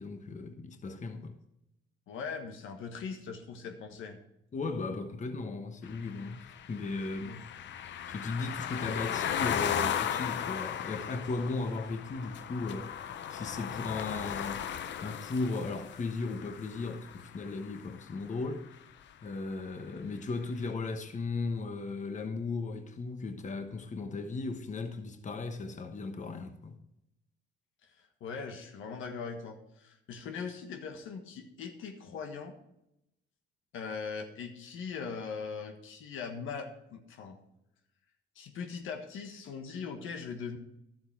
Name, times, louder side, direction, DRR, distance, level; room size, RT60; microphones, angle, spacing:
voice 1, 0.0-1.4 4.5-7.4 7.8-12.9 13.3-14.6 15.0-18.6 19.2-26.7, left 3 dB, 40° left, 1.2 m, -36 dB
voice 2, 2.1-4.2 6.2-6.3 7.2-7.4 27.8-32.5 33.7-37.4 38.3-40.6, left 5 dB, 85° left, 1.5 m, -40 dB
sound 1, 5.9-17.9, left 9 dB, 65° left, 0.7 m, -36 dB
11.5 x 8.0 x 4.6 m
cardioid pair, 90°, 20 cm